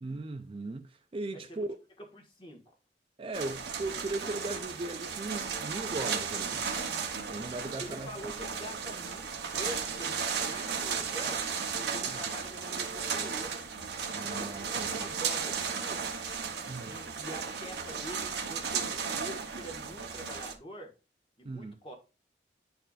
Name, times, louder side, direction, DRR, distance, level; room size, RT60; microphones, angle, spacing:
voice 1, 0.0-1.7 3.2-6.7 7.3-8.3 12.1-12.2 14.1-15.1 16.7-17.0 21.4-21.8, right 2 dB, 30° right, 0.4 m, -38 dB
voice 2, 1.3-1.7 2.0-2.6 7.8-11.4 11.8-13.6 14.3-16.2 16.8-20.9 21.4-21.9, equal, 30° left, 1.5 m, -45 dB
sound 1, 3.3-20.5, right 6 dB, 65° right, 1.0 m, -35 dB
10.5 x 4.5 x 2.4 m
head